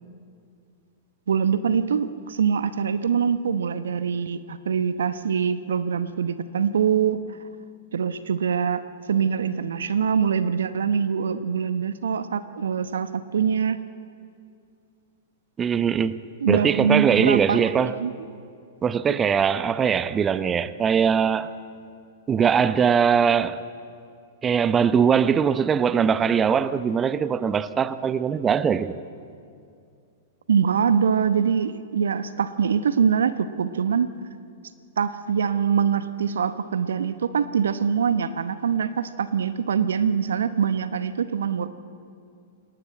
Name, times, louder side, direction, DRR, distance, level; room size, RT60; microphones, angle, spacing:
voice 1, 1.3-7.2 7.9-8.8 9.1-13.8 16.4-18.3 30.5-34.1 35.0-41.7, right 7 dB, 70° right, 0.9 m, -24 dB
voice 2, 15.6-18.0 18.8-21.5 22.3-23.6 24.4-29.0, right 7 dB, 20° right, 0.8 m, -21 dB
27.5 x 19.5 x 7.6 m
figure-of-eight pair, 100°, 0 cm